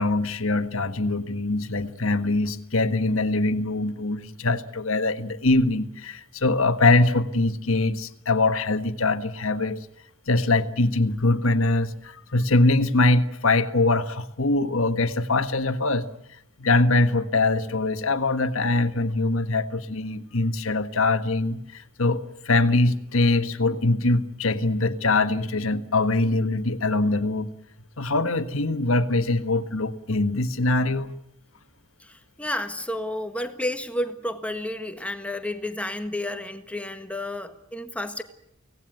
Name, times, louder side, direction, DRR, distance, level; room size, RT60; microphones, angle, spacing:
voice 1, 0.0-9.9 10.3-16.1 16.6-27.5 28.0-31.1, left 2 dB, 70° left, 10 dB, 1.6 m, -23 dB
voice 2, 32.0-38.2, left 1 dB, 5° left, 8 dB, 1.6 m, -31 dB
25.0 x 18.0 x 9.2 m, 0.79 s
head